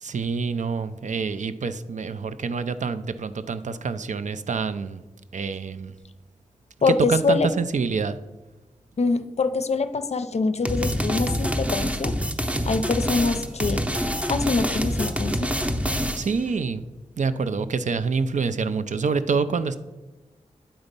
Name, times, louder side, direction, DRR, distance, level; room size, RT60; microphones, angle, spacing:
voice 1, 0.0-5.0 5.3-5.9 6.9-8.2 16.2-16.9 17.2-19.8, right 5 dB, 60° right, 12 dB, 0.5 m, -26 dB
voice 2, 6.8-7.5 9.0-12.2 12.6-13.8 14.3-15.5, left 4 dB, 50° left, 11 dB, 0.5 m, -24 dB
sound 1, 10.6-16.4, equal, 10° right, 0.7 m, -26 dB
8.9 x 4.0 x 5.2 m, 1.1 s
wide cardioid pair, 65°, 14 cm